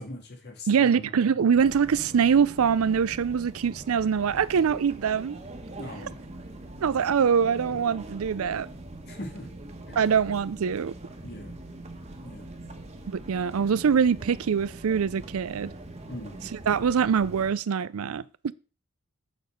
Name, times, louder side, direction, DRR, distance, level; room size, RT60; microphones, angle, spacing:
voice 1, 0.0-1.1 5.8-6.2 9.1-9.5 9.9-10.0 11.2-11.6 12.2-12.5 16.1-16.4, left 1 dB, 50° left, 1.9 m, -40 dB
voice 2, 0.7-5.4 6.8-8.7 10.0-10.9 13.1-15.7 16.7-18.5, right 6 dB, 85° right, 0.4 m, -24 dB
sound 1, 1.5-17.5, right 1 dB, 30° right, 1.3 m, -42 dB
6.7 x 6.3 x 5.2 m
head